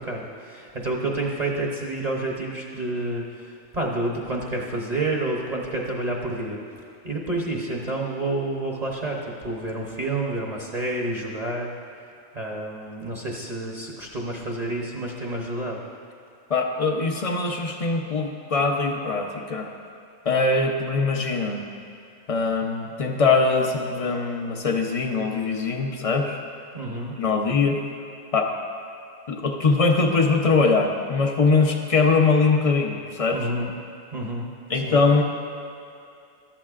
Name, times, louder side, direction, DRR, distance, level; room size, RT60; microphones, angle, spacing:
voice 1, 0.0-6.6 7.0-11.7 12.3-15.8 26.7-27.1 33.3-33.7 34.1-34.5 34.7-35.0, right 2 dB, 35° right, -2 dB, 0.9 m, -29 dB
voice 2, 16.5-19.7 20.2-21.6 22.3-26.4 27.2-27.8 28.3-28.5 29.3-33.5 34.7-35.2, left 4 dB, 35° left, 3 dB, 0.6 m, -22 dB
14.5 x 11.5 x 2.5 m, 2.6 s
omnidirectional pair, 1.5 m